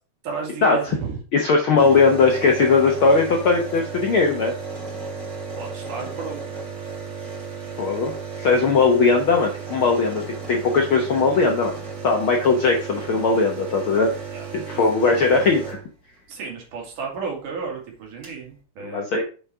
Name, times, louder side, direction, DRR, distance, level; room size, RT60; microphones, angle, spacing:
voice 1, 0.2-1.1 5.6-6.7 14.3-14.8 15.2-15.3 16.3-19.1, right 5 dB, 75° right, 0 dB, 3.7 m, -33 dB
voice 2, 1.3-4.5 7.8-10.2 10.5-11.7 12.0-14.1 14.5-15.8 18.8-19.2, left 4 dB, 65° left, 2 dB, 1.3 m, -19 dB
sound 1, 1.8-16.4 17.7-17.8 18.0-18.4, right 5 dB, 30° right, 3.1 m, -34 dB
6.9 x 5.8 x 4.8 m, 0.37 s
omnidirectional pair, 3.6 m